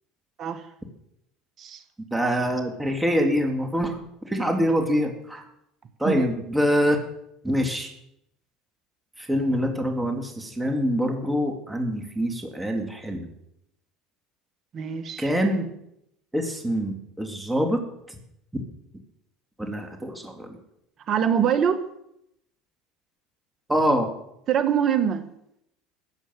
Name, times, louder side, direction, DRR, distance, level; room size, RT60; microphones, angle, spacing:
voice 1, 2.1-4.0 4.2-5.4 6.0-7.0 7.4-7.9 9.2-13.3 15.2-15.7 16.3-18.2 18.5-18.6 19.6-20.6 23.7-24.1, equal, 10° right, 3 dB, 3.1 m, -25 dB
voice 2, 14.7-15.3 21.1-21.8 24.5-25.3, right 8 dB, 45° right, 10 dB, 1.7 m, -24 dB
15.0 x 8.2 x 7.6 m, 0.78 s
hypercardioid pair, 80°, 0 cm